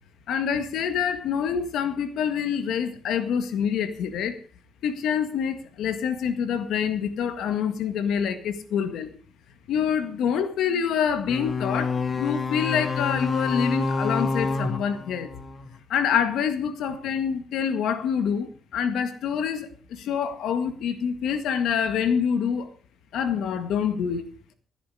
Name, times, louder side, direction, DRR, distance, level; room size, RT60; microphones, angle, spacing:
voice 1, 0.3-4.4 4.8-9.1 9.7-15.3 15.9-19.7 20.0-22.7 23.1-24.3, left 7 dB, 80° left, 9 dB, 1.8 m, -26 dB
sound 1, 11.3-15.7, left 4 dB, 40° left, 1.9 m, -28 dB
16.5 x 10.0 x 4.9 m, 0.40 s
cardioid pair, 90°, 0 cm